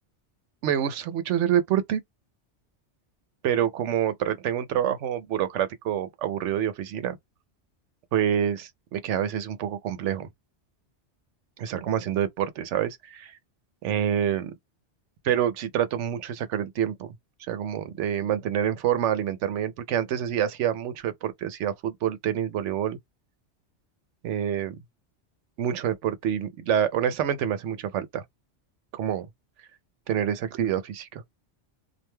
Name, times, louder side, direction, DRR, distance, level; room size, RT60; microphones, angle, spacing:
voice 1, 0.6-2.0 3.4-7.2 8.1-10.3 11.6-13.3 13.8-14.5 15.2-17.1 17.5-23.0 24.2-24.7 25.6-28.2 28.9-29.3 30.1-31.2, right 9 dB, 90° right, 0.9 m, -27 dB
2.3 x 2.2 x 2.9 m
omnidirectional pair, 1.2 m